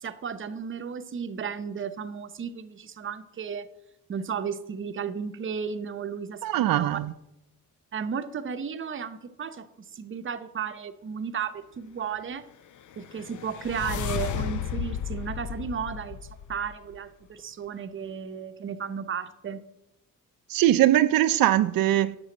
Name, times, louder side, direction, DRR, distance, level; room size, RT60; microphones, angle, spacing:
voice 1, 0.0-3.7 4.1-7.0 7.9-9.7 9.9-12.4 13.0-16.2 16.5-19.6, right 7 dB, 35° right, 0.7 m, -34 dB
voice 2, 6.4-7.1 20.5-22.2, right 13 dB, 80° right, 0.5 m, -21 dB
sound 1, 12.8-17.0, left 9 dB, 60° left, 0.6 m, -34 dB
9.1 x 6.9 x 7.6 m
wide cardioid pair, 145°, 34 cm